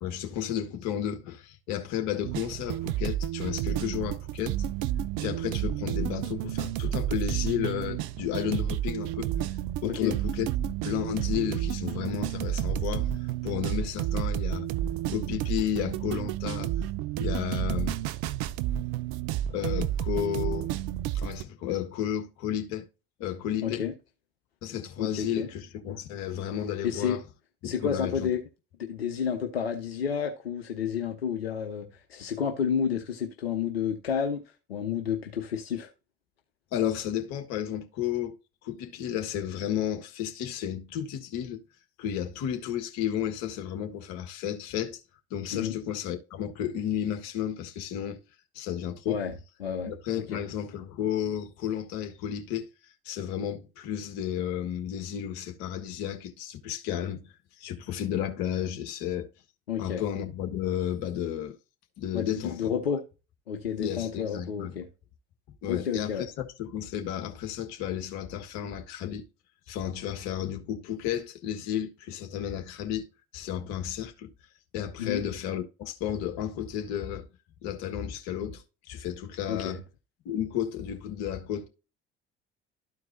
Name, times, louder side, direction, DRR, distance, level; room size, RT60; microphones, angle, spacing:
voice 1, 0.0-4.5 5.2-9.3 9.8-10.5 10.8-13.1 13.4-14.7 15.1-16.7 17.2-18.0 19.5-20.7 21.1-22.9 23.2-23.8 24.6-27.2 27.6-28.3 36.7-38.3 38.6-41.6 42.0-45.0 45.3-48.2 48.5-49.2 49.9-52.7 53.0-59.3 59.8-61.6 62.0-63.0 63.8-64.8 65.6-69.3 69.7-73.1 73.3-74.3 74.7-77.3 77.6-79.8 80.2-81.7, left 10 dB, 65° left, 1.5 m, -32 dB
sound 1, 2.2-21.4, right 11 dB, 65° right, 0.6 m, -31 dB
voice 2, 9.8-10.1 23.6-23.9 25.0-25.5 26.8-27.2 27.6-28.4 28.8-34.4 34.7-35.9 45.5-45.8 49.1-50.4 59.7-60.0 62.1-63.0 63.5-64.9 65.7-66.3 75.0-75.2 79.5-79.8, left 7 dB, 85° left, 0.9 m, -30 dB
13.0 x 4.6 x 2.6 m
hypercardioid pair, 55°, 30 cm